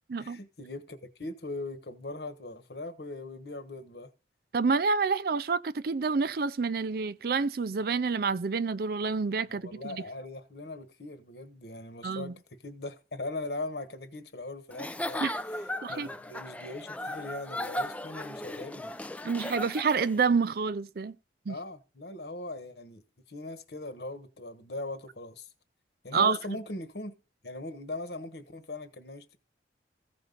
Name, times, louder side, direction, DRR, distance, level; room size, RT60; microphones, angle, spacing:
voice 1, 0.2-4.1 9.6-18.9 21.5-23.0 23.3-25.5 26.0-27.1 27.4-29.4, left 2 dB, 65° left, 1.3 m, -40 dB
voice 2, 4.5-10.0 12.0-12.3 15.2-15.3 15.8-16.1 19.2-21.1 21.5-21.6 26.1-26.4, right 5 dB, 55° right, 0.5 m, -28 dB
Giggle / Chuckle chortle, 14.7-20.2, left 1 dB, 10° left, 0.4 m, -37 dB
15.5 x 5.4 x 3.9 m
head